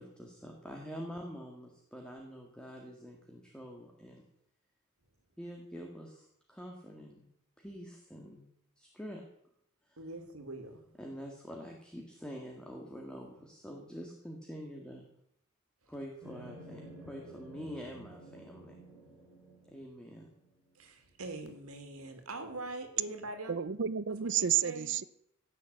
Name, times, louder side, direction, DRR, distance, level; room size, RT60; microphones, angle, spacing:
voice 1, 0.0-4.3 5.4-7.2 7.6-8.4 8.8-9.2 9.8-10.0 11.0-15.1 15.9-18.7 19.7-20.3, equal, 5° left, 0 dB, 1.8 m, -46 dB
voice 2, 10.0-10.8 15.8-15.9 20.7-23.5 24.2-25.1, right 2 dB, 80° right, 6 dB, 2.3 m, -43 dB
sound 1, 16.2-20.7, right 1 dB, 10° right, 4.0 m, -52 dB
voice 3, 23.5-25.0, right 9 dB, 55° right, 18 dB, 0.6 m, -31 dB
16.5 x 6.5 x 8.3 m, 0.75 s
head